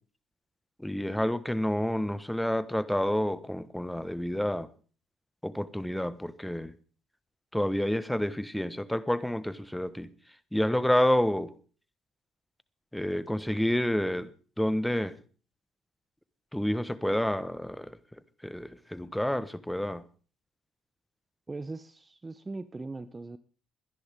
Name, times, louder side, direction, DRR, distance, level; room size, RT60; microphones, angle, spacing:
voice 1, 0.8-4.7 5.4-6.7 7.5-10.1 10.5-11.5 12.9-14.3 14.6-15.1 16.5-17.9 18.4-20.0, left 1 dB, 5° left, 1.2 m, -29 dB
voice 2, 21.5-23.4, right 3 dB, 25° right, 0.7 m, -40 dB
22.0 x 10.5 x 3.6 m
supercardioid pair, 65°, 0 cm